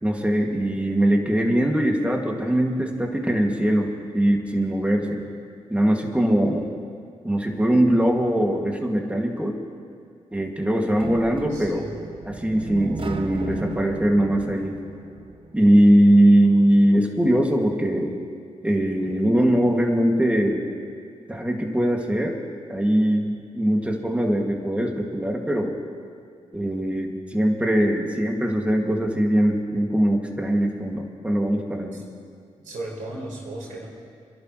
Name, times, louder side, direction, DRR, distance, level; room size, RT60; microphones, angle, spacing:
voice 1, 0.0-5.2 5.7-6.7 7.2-9.6 10.3-11.9 12.3-14.7 15.5-18.1 18.6-20.6 21.3-22.4 22.7-25.8 26.5-32.0, right 1 dB, 10° right, 0 dB, 2.4 m, -21 dB
sound 1, 11.0-15.9, right 4 dB, 40° right, 1.1 m, -36 dB
voice 2, 11.5-11.9 31.9-32.0 32.6-33.9, right 2 dB, 80° right, -4 dB, 4.4 m, -35 dB
27.5 x 11.5 x 3.3 m, 2.3 s
supercardioid pair, 45°, 13 cm